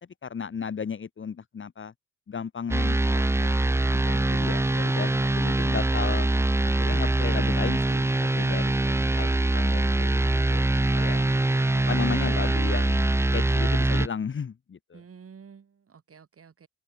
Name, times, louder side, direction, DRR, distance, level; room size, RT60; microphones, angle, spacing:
voice 1, 0.2-1.9 2.3-6.3 6.8-8.7 9.2-10.2 10.5-10.6 10.9-11.2 11.9-15.0, left 6 dB, 35° left, 1.8 m, -34 dB
sound 1, 2.7-14.1, right 2 dB, 5° right, 0.8 m, -23 dB
voice 2, 14.9-16.7, right 6 dB, 40° right, 5.1 m, -50 dB
cardioid pair, 140°, 35 cm